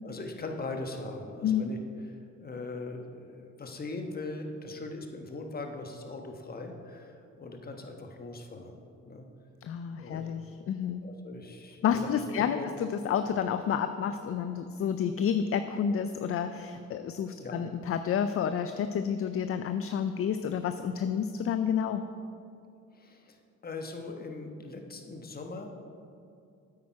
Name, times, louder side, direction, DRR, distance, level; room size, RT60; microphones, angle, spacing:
voice 1, 0.0-1.8 2.1-9.3 10.0-10.3 11.0-12.7 17.4-17.6 22.9-23.4 23.6-25.7, left 3 dB, 30° left, 3 dB, 1.2 m, -40 dB
voice 2, 9.6-11.0 11.8-22.0, left 8 dB, 50° left, 9 dB, 0.5 m, -30 dB
8.7 x 8.5 x 4.7 m, 2.5 s
cardioid pair, 90°, 30 cm